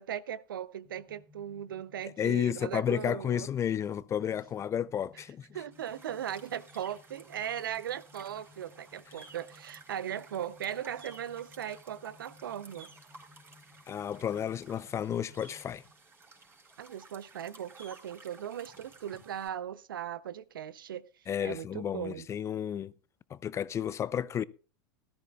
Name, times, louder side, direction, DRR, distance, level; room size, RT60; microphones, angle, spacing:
voice 1, 0.0-3.5 5.5-12.9 16.8-21.1 21.4-22.3, right 10 dB, 75° right, 0.7 m, -38 dB
sound 1, 0.9-15.9, left 4 dB, 40° left, 1.8 m, -61 dB
voice 2, 2.2-5.5 13.9-15.8 21.3-22.9 23.3-24.4, left 9 dB, 25° left, 0.5 m, -32 dB
sound 2, 5.7-19.5, right 3 dB, 20° right, 4.1 m, -55 dB
18.0 x 13.0 x 2.3 m
hypercardioid pair, 95°, 11 cm